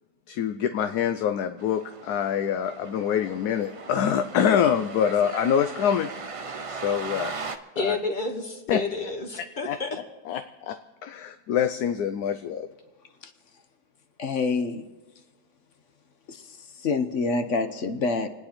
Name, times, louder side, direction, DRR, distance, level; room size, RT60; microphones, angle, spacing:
voice 1, 0.3-6.1 6.7-8.0 8.7-8.8 9.6-9.8 10.3-10.8 11.0-12.7, left 8 dB, 70° left, 9 dB, 1.2 m, -25 dB
sound 1, 1.6-7.6, right 4 dB, 50° right, 0.4 m, -38 dB
voice 2, 7.3-10.0, left 3 dB, 30° left, 5 dB, 1.2 m, -31 dB
voice 3, 14.2-14.8 16.3-18.3, left 4 dB, 55° left, 8 dB, 1.0 m, -27 dB
28.0 x 9.7 x 4.3 m, 1.2 s
omnidirectional pair, 1.8 m